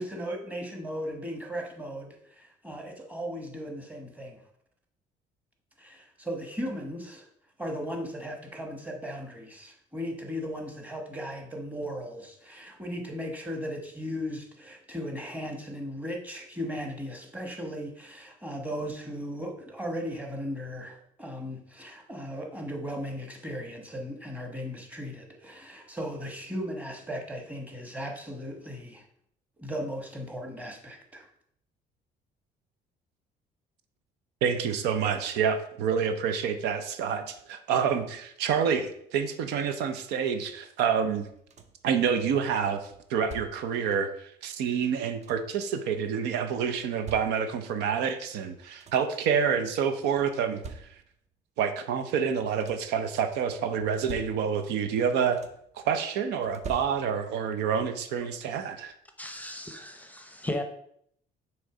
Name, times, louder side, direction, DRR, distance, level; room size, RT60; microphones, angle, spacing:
voice 1, 0.0-4.4 5.8-7.3 7.6-29.0 29.6-31.3, equal, 10° right, 2 dB, 1.1 m, -37 dB
voice 2, 34.4-41.3 41.8-50.6 51.6-55.4 55.8-58.9, right 7 dB, 90° right, 9 dB, 0.6 m, -28 dB
sound 1, 41.1-41.9 42.9-43.8 44.8-45.6 46.6-47.8 48.3-48.4 48.6-49.2 50.2-51.3 52.3-53.0 53.7-54.8 55.0-55.8 56.4-57.4 58.7-58.8 59.3-59.5, right 4 dB, 40° right, 0.6 m, -46 dB
voice 3, 59.2-60.6, left 1 dB, 10° left, 6 dB, 0.6 m, -35 dB
6.3 x 3.1 x 4.8 m, 0.70 s
cardioid pair, 110°, 17 cm